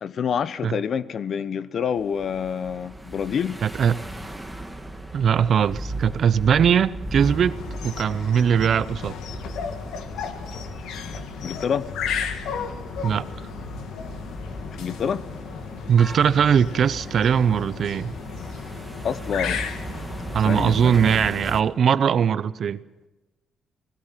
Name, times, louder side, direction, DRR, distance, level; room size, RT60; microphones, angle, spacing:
voice 1, 0.0-3.6 11.4-11.8 14.7-15.2 19.0-19.6 20.4-21.2, left 7 dB, 50° left, 0.9 m, -27 dB
sound 1, 1.9-21.6, right 1 dB, 5° right, 1.6 m, -37 dB
voice 2, 3.6-4.0 5.1-9.1 13.0-13.3 15.9-18.1 20.3-22.8, right 7 dB, 55° right, 0.7 m, -20 dB
sound 2, 7.2-21.5, left 7 dB, 85° left, 1.8 m, -35 dB
26.0 x 17.5 x 5.9 m
cardioid pair, 130°, 0 cm